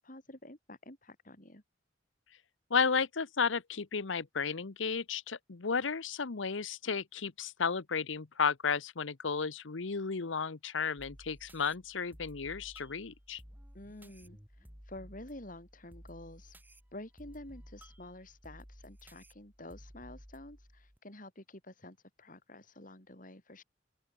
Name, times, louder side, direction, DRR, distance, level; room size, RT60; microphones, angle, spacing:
voice 1, 0.0-1.6 13.7-16.6 16.9-23.6, left 1 dB, 45° left, 5.0 m, -49 dB
voice 2, 2.7-13.4, left 5 dB, 80° left, 0.9 m, -33 dB
sound 1, 11.0-21.0, equal, 10° right, 5.7 m, -55 dB
open air
head